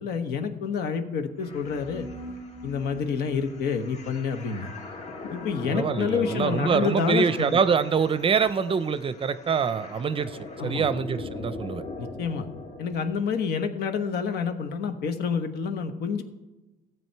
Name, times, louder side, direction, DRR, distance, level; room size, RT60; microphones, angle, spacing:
voice 1, 0.0-2.1 2.6-4.7 5.3-7.6 10.6-10.9 12.0-12.5 12.8-16.2, left 6 dB, 70° left, 6 dB, 1.3 m, -28 dB
sound 1, 1.4-13.1, left 2 dB, 45° left, 1.7 m, -40 dB
voice 2, 5.7-11.8, right 6 dB, 35° right, 14 dB, 0.6 m, -25 dB
14.5 x 8.0 x 4.6 m, 1.1 s
cardioid pair, 110°, 17 cm